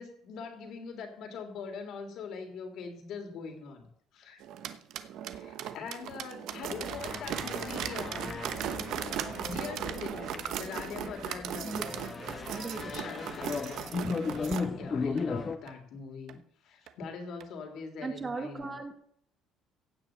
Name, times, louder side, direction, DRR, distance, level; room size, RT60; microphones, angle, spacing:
voice 1, 0.0-3.9 4.1-4.4 5.3-8.3 9.0-11.9 12.8-13.8 14.3-16.4 16.6-18.9, left 5 dB, 55° left, 5 dB, 3.1 m, -42 dB
sound 1, 4.4-14.7 15.2-15.3 15.7-15.8 16.3-16.4 16.9-17.0 17.4-17.5, right 10 dB, 60° right, 1.0 m, -38 dB
sound 2, 6.6-15.6, left 5 dB, 25° left, 1.2 m, -37 dB
voice 2, 11.6-13.3 14.0-15.0 18.0-18.9, right 3 dB, 20° right, 6 dB, 1.4 m, -40 dB
15.5 x 5.7 x 9.1 m, 0.66 s
cardioid pair, 160°, 0 cm